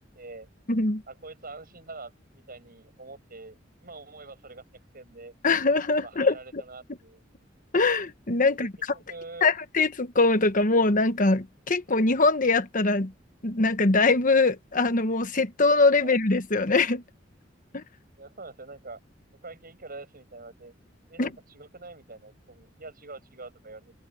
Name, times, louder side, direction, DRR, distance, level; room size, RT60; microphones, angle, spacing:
voice 1, 0.1-0.5 1.1-4.6 4.9-5.3 6.0-7.2 8.5-9.5 16.0-16.2 18.2-19.0 19.4-20.7 21.1-23.9, right 3 dB, 50° right, 7.9 m, -45 dB
voice 2, 0.7-1.0 5.4-6.6 7.7-8.7 9.4-13.1 13.4-17.0 17.7-17.8 21.2-21.3, left 3 dB, 45° left, 1.2 m, -22 dB
head